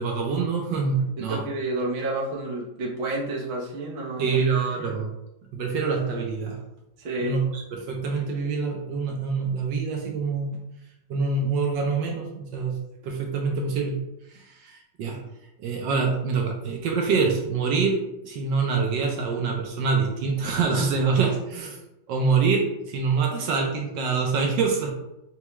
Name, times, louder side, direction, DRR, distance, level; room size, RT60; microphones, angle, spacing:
voice 1, 0.0-1.4 4.2-5.1 5.5-6.6 7.2-10.5 11.1-12.8 13.0-14.0 14.3-15.2 15.6-18.0 18.2-21.8 22.1-24.9, right 5 dB, 75° right, 1 dB, 1.3 m, -25 dB
voice 2, 1.2-4.9 7.0-7.4, right 2 dB, 45° right, -4 dB, 1.0 m, -30 dB
5.5 x 2.3 x 3.0 m, 0.86 s
omnidirectional pair, 2.0 m